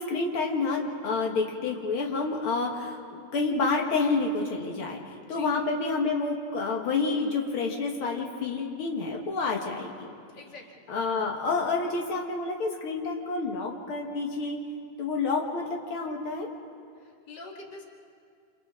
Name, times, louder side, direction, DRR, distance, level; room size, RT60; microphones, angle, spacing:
voice 1, 0.0-10.1 10.9-14.6 15.0-16.5, left 3 dB, 90° left, 0 dB, 1.1 m, -29 dB
voice 2, 5.2-5.5 10.3-10.6 17.0-17.8, left 3 dB, 40° left, 0 dB, 1.7 m, -45 dB
29.0 x 28.0 x 3.7 m, 2.3 s
omnidirectional pair, 4.7 m